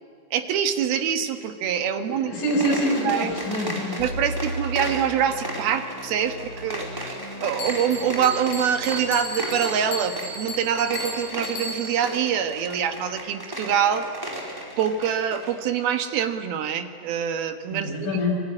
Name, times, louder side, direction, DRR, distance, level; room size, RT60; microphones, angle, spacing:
voice 1, 0.3-2.3 3.0-3.3 4.0-14.1 14.8-18.1, right 8 dB, 75° right, 7 dB, 3.4 m, -25 dB
voice 2, 2.1-4.0 17.7-18.4, equal, 60° left, -1 dB, 7.1 m, -25 dB
sound 1, 2.3-15.6, equal, 5° right, 4.3 m, -35 dB
sound 2, 4.0-13.7 14.1-14.2 14.7-14.9, right 1 dB, 30° left, 6.2 m, -39 dB
Bell, 7.6-12.1, equal, 75° left, 5.2 m, -35 dB
26.0 x 23.5 x 9.8 m, 2.1 s
omnidirectional pair, 4.4 m